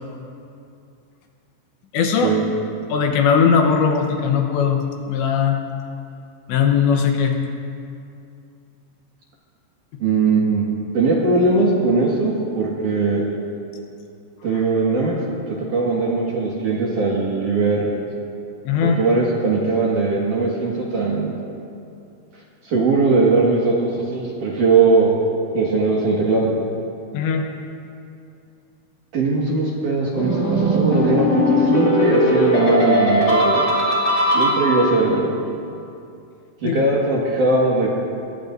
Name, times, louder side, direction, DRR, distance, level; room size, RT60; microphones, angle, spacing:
voice 1, 1.9-2.3 2.9-4.8 5.1-5.6 6.5-7.3 18.7-19.0 27.1-27.4 36.6-36.8, left 6 dB, 75° left, 3 dB, 3.1 m, -18 dB
voice 2, 10.0-10.6 10.9-13.2 14.4-15.1 15.5-18.0 18.8-21.4 22.6-25.1 25.5-26.5 29.1-33.6 34.3-35.3 36.6-37.9, right 3 dB, 55° right, -4 dB, 2.6 m, -20 dB
sound 1, 30.2-35.1, equal, 30° left, 3.2 m, -18 dB
23.5 x 20.0 x 2.7 m, 2.5 s
omnidirectional pair, 5.5 m